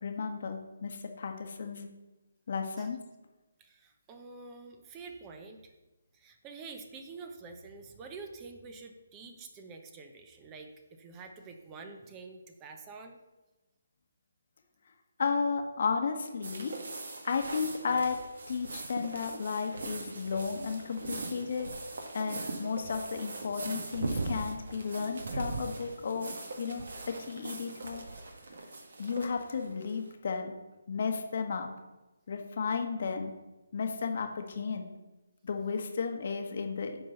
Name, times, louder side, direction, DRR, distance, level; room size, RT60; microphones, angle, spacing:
voice 1, 0.0-1.9 2.5-3.0 15.2-16.8 17.2-18.2 18.5-21.7 22.1-26.8 27.3-28.0 29.0-30.5 30.9-31.7 32.3-33.3 33.7-34.9 35.4-37.0, left 5 dB, 50° left, 5 dB, 1.2 m, -33 dB
voice 2, 3.6-5.7 6.1-13.2, right 4 dB, 20° right, 5 dB, 0.8 m, -47 dB
Canvas Flap, 16.4-30.1, right 3 dB, 60° right, 1.6 m, -40 dB
9.9 x 3.9 x 6.6 m, 1.1 s
figure-of-eight pair, 150°, 0 cm